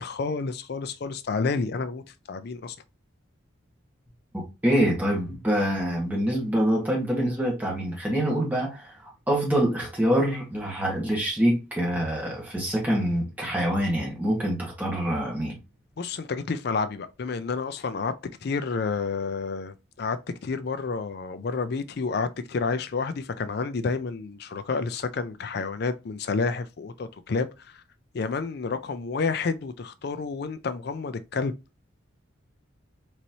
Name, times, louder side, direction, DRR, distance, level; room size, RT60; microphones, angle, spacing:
voice 1, 0.0-2.8 16.0-18.1 18.4-27.8 28.1-31.5, left 4 dB, 50° left, 0.4 m, -30 dB
voice 2, 4.3-15.5, equal, 10° right, 1.4 m, -25 dB
4.0 x 3.1 x 2.7 m
head